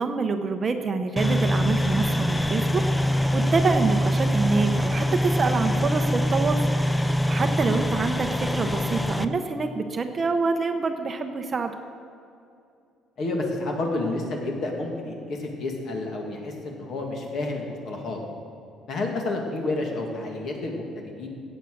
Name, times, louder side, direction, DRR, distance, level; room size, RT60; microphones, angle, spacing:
voice 1, 0.0-11.7, right 4 dB, 30° right, 7 dB, 0.7 m, -26 dB
sound 1, 1.2-9.2, equal, 5° left, 0.4 m, -24 dB
voice 2, 13.2-18.2 18.9-21.3, left 2 dB, 50° left, 1 dB, 2.3 m, -30 dB
16.0 x 8.2 x 6.4 m, 2.5 s
cardioid pair, 155°, 0 cm